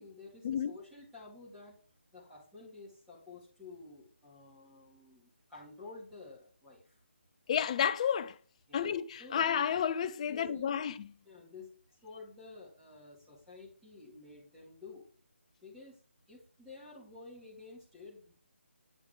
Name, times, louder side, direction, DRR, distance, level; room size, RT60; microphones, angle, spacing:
voice 1, 0.0-1.8 2.1-7.0 8.7-8.9 9.2-9.5 10.3-10.8 11.2-11.7 12.0-15.1 15.6-16.0 16.3-18.3, left 3 dB, 5° right, 2.3 m, -51 dB
voice 2, 7.5-8.4 8.7-11.1, left 8 dB, 30° left, 0.4 m, -31 dB
8.7 x 4.6 x 3.7 m
figure-of-eight pair, 155°, 7 cm